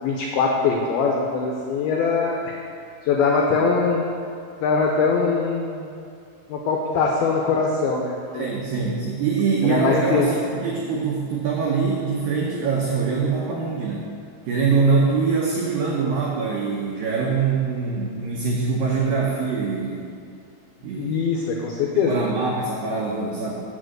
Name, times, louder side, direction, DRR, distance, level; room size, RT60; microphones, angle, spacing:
voice 1, 0.0-2.5 3.0-4.1 4.6-5.9 6.5-8.6 9.6-10.3 14.9-15.0 21.0-22.3, left 4 dB, 90° left, -1 dB, 2.1 m, -22 dB
voice 2, 8.3-14.1 14.5-20.2 20.8-21.2 21.9-23.6, right 4 dB, 85° right, -2 dB, 2.0 m, -23 dB
7.5 x 6.4 x 7.7 m, 2.3 s
omnidirectional pair, 5.4 m